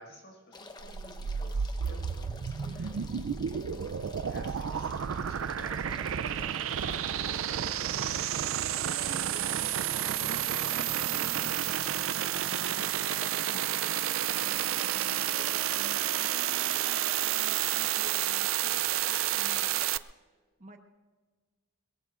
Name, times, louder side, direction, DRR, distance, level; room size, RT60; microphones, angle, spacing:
voice 1, 0.0-3.2 4.3-8.0 14.4-15.0, left 1 dB, 55° left, 1 dB, 5.3 m, -52 dB
sound 1, 0.5-19.9, left 3 dB, 20° left, 0.9 m, -50 dB
sound 2, 0.8-20.0, right 10 dB, 85° right, 0.4 m, -30 dB
voice 2, 3.7-4.2 8.8-12.9 13.3-20.8, right 1 dB, 35° right, 4 dB, 1.1 m, -51 dB
22.0 x 22.0 x 2.5 m, 1.4 s
head